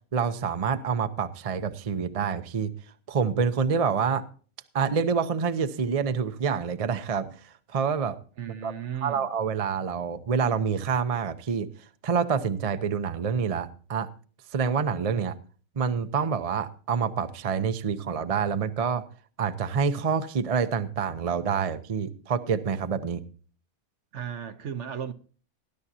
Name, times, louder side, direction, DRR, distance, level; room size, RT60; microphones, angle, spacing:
voice 1, 0.1-2.7 3.1-4.2 4.7-7.4 7.7-8.2 8.6-8.7 9.0-11.7 12.0-14.1 14.5-15.3 15.8-19.0 19.4-23.2, right 6 dB, 35° right, 0.6 m, -27 dB
voice 2, 8.4-9.3 24.1-25.1, right 8 dB, 60° right, 1.1 m, -35 dB
19.5 x 11.0 x 2.7 m
omnidirectional pair, 1.4 m